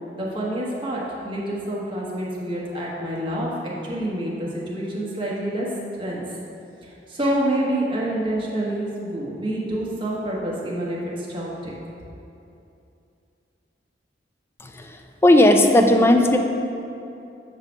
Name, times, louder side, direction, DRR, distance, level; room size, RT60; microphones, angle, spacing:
voice 1, 0.2-3.5 3.8-5.7 6.0-6.2 6.8-11.7, right 1 dB, 30° right, -5 dB, 1.2 m, -27 dB
voice 2, 15.2-16.4, left 1 dB, 15° left, 4 dB, 0.4 m, -14 dB
7.4 x 3.2 x 6.1 m, 2.7 s
head